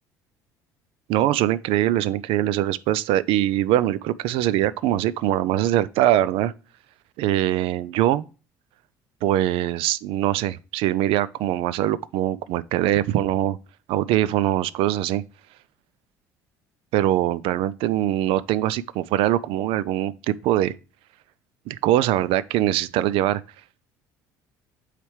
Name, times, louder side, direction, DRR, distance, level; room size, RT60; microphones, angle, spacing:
voice 1, 1.1-6.5 7.2-8.3 9.2-13.6 13.9-15.2 16.9-20.7 21.7-23.4, right 13 dB, 65° right, 0.5 m, -22 dB
8.7 x 3.3 x 4.7 m
hypercardioid pair, 70°, 10 cm